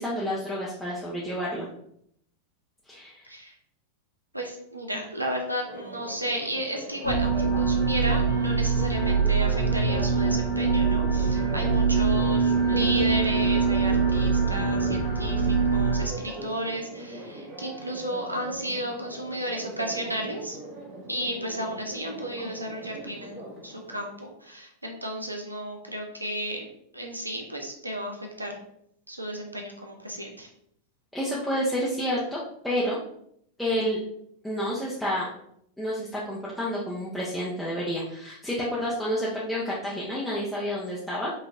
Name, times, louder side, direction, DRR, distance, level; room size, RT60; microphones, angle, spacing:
voice 1, 0.0-1.7 2.9-3.3 4.9-5.0 31.1-32.4 32.6-33.0 33.6-34.0 34.4-35.3 35.8-41.3, equal, ahead, -8 dB, 0.8 m, -29 dB
voice 2, 4.3-20.6 21.1-26.7 26.9-28.6 29.1-30.5, equal, 85° right, 2 dB, 0.6 m, -33 dB
Church bell, 5.6-24.0, right 1 dB, 50° right, 1.3 m, -40 dB
sound 1, 7.0-16.0, right 5 dB, 70° left, 1.4 m, -23 dB
5.4 x 2.9 x 2.6 m, 0.71 s
figure-of-eight pair, 90°, 0 cm